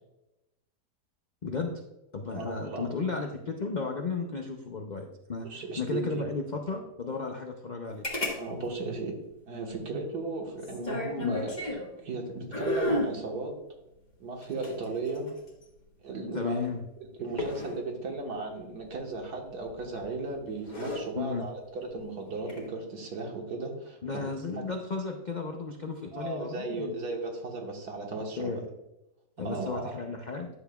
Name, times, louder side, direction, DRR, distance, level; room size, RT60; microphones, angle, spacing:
voice 1, 1.4-1.8 2.1-8.0 11.2-11.4 16.3-16.8 21.2-21.5 24.0-26.9 28.4-28.6 29.4-30.5, left 4 dB, 75° left, 2 dB, 0.4 m, -34 dB
voice 2, 2.3-2.9 5.5-6.2 8.3-9.1 9.5-11.6 12.0-13.5 14.2-15.3 16.0-16.6 17.2-24.0 24.6-24.7 26.1-28.6 29.4-29.9, right 3 dB, 65° right, 1 dB, 1.9 m, -35 dB
sound 1, 8.0-8.4 8.6-8.7 10.6-11.9 12.5-13.2 14.4-15.6 17.4-17.8 19.6-20.0 20.5-21.0 22.4-22.7, left 1 dB, 25° left, 1.5 m, -32 dB
10.5 x 6.9 x 2.3 m, 0.92 s
omnidirectional pair, 1.8 m